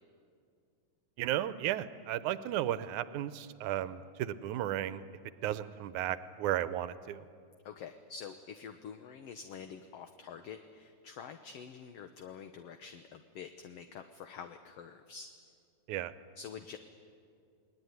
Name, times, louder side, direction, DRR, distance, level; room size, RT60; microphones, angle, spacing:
voice 1, 1.2-5.0 5.4-7.3 15.9-16.1, right 12 dB, 75° right, 14 dB, 2.2 m, -34 dB
voice 2, 7.7-15.3 16.4-16.8, left 7 dB, 65° left, 7 dB, 1.8 m, -47 dB
29.5 x 20.5 x 9.6 m, 2.3 s
omnidirectional pair, 3.7 m